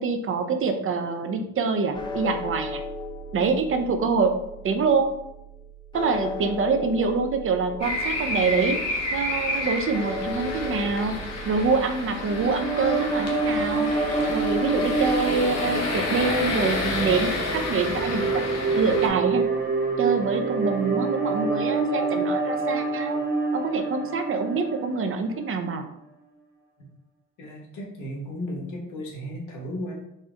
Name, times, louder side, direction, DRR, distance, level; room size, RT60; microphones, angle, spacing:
voice 1, 0.0-2.8 3.3-4.3 4.6-5.1 5.9-11.2 11.5-13.9 14.3-18.4 18.8-19.5 20.0-23.2 23.5-25.9, right 4 dB, 45° right, 6 dB, 0.5 m, -25 dB
sound 1, 1.9-20.2, left 2 dB, 15° left, 0.4 m, -38 dB
sound 2, 7.8-19.1, left 2 dB, 60° left, 0.9 m, -30 dB
sound 3, 12.0-25.4, right 3 dB, 30° right, 0.9 m, -27 dB
voice 2, 27.4-29.9, equal, 85° left, -3 dB, 1.2 m, -35 dB
4.2 x 2.3 x 3.7 m, 0.82 s
cardioid pair, 90°, 30 cm